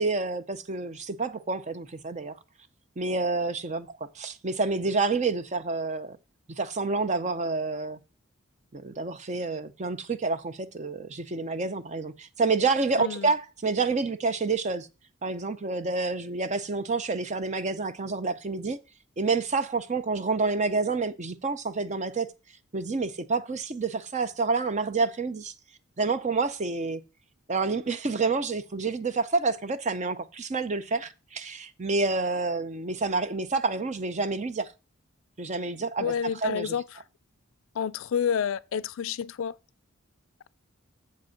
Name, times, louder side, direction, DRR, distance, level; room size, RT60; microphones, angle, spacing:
voice 1, 0.0-2.3 3.0-3.9 4.2-6.2 6.6-8.0 8.7-14.9 15.2-18.8 19.2-22.3 22.7-25.5 26.0-27.0 27.5-34.7 35.4-36.1 36.4-36.7, right 3 dB, 35° right, 0.6 m, -28 dB
voice 2, 13.0-13.3 36.0-37.0 37.7-39.5, left 7 dB, 70° left, 0.4 m, -29 dB
7.1 x 5.2 x 5.8 m
head